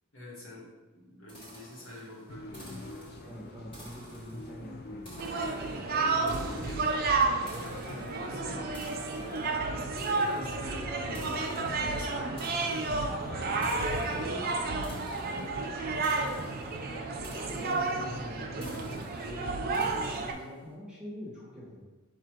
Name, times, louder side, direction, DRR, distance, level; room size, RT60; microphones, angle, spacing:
voice 1, 0.1-3.1 5.9-8.7 9.6-9.8 10.3-12.9 13.2-16.3, left 1 dB, 75° left, -6 dB, 1.5 m, -45 dB
sound 1, 1.3-20.7, equal, 25° left, 1.2 m, -53 dB
sound 2, 2.3-19.0, left 2 dB, 45° left, 0.4 m, -45 dB
voice 2, 3.2-5.3 5.6-6.6 9.3-9.6 17.3-18.5 18.7-21.8, equal, 5° right, -7 dB, 1.1 m, -45 dB
sound 3, 5.2-20.3, right 3 dB, 45° right, 0.4 m, -31 dB
4.4 x 2.5 x 4.5 m, 1.2 s
head